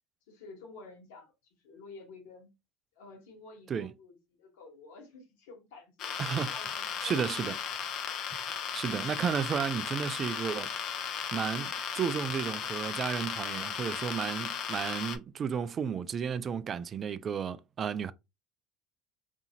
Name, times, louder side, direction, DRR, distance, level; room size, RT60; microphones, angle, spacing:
voice 1, 0.3-2.5 2.9-7.3 7.7-7.8, left 3 dB, 75° left, 1.2 m, -51 dB
sound 1, 6.0-15.2, left 8 dB, 55° left, 0.5 m, -36 dB
voice 2, 6.2-6.5 7.0-7.5 8.7-10.7 11.3-18.1, right 7 dB, 40° right, 0.3 m, -33 dB
2.7 x 2.5 x 2.8 m
hypercardioid pair, 70°, 0 cm